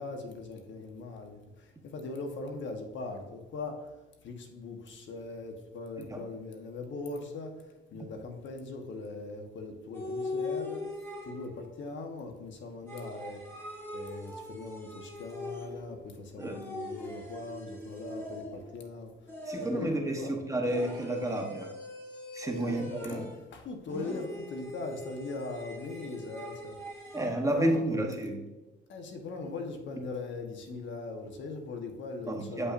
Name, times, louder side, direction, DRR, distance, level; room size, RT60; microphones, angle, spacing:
voice 1, 0.0-3.9 4.2-7.6 7.9-10.9 11.2-13.4 13.9-20.4 22.6-26.8 27.5-28.0 28.9-32.7, left 3 dB, 70° left, 1.2 m, -40 dB
sound 1, 9.9-11.7 12.9-15.9 16.4-18.8 19.3-20.0 20.7-23.5 23.9-27.4, left 1 dB, 10° left, 1.7 m, -41 dB
voice 2, 19.5-21.7 22.3-23.2 27.1-28.4 32.3-32.7, right 1 dB, 15° right, 1.0 m, -31 dB
8.0 x 5.5 x 2.5 m
cardioid pair, 90°, 20 cm